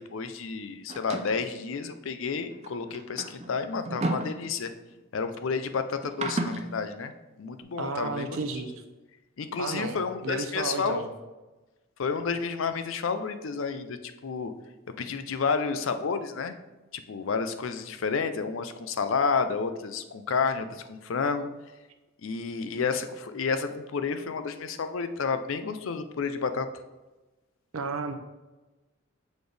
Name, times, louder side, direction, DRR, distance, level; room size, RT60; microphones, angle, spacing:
voice 1, 0.0-4.7 5.1-7.1 7.4-8.4 9.4-11.0 12.0-14.0 14.2-14.5 15.0-16.5 16.9-21.5 22.2-26.7, left 5 dB, 70° left, 9 dB, 0.5 m, -30 dB
sound 1, 0.9-1.5 2.5-4.9 6.0-6.7, right 2 dB, 30° right, 0.4 m, -33 dB
voice 2, 7.8-8.8 9.6-11.1 27.7-28.1, right 4 dB, 80° right, 7 dB, 0.6 m, -33 dB
6.9 x 4.1 x 3.3 m, 1.1 s
head